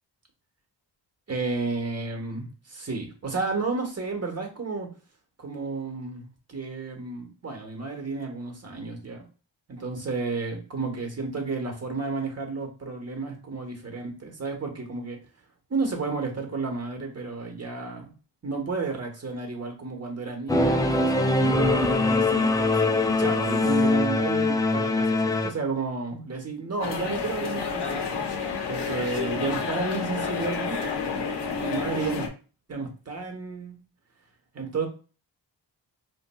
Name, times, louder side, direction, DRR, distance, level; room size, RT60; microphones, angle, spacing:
voice 1, 1.3-4.9 5.4-9.2 9.7-15.2 15.7-18.1 18.4-28.1 28.7-31.3 31.6-32.2 32.7-33.8 34.5-34.9, right 3 dB, 35° right, 4 dB, 1.0 m, -32 dB
Singing / Musical instrument, 20.5-25.5, left 2 dB, 10° left, 0.3 m, -22 dB
sound 1, 26.8-32.3, left 5 dB, 65° left, 0.8 m, -30 dB
4.1 x 2.5 x 2.2 m, 0.36 s
cardioid pair, 75°, 45 cm